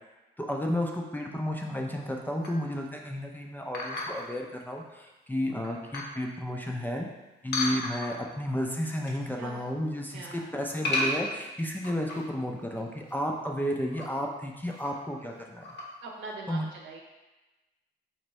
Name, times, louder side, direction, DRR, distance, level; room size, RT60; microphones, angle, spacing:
voice 1, 0.4-7.1 7.4-15.7 16.5-16.7, equal, 10° left, 0 dB, 0.4 m, -32 dB
sound 1, 2.4-2.7 3.7-4.3 5.0-5.1 5.5-6.2 7.5-8.3 8.7-9.3 9.6-10.0 10.8-12.4 12.7-12.8 13.1-13.2 13.8-14.1 14.7-15.2 15.6-15.9, left 2 dB, 60° left, 0.9 m, -33 dB
voice 2, 10.1-10.5 16.0-17.0, right 3 dB, 80° right, -1 dB, 0.8 m, -41 dB
4.2 x 2.6 x 3.1 m, 1.1 s
cardioid pair, 90°, 20 cm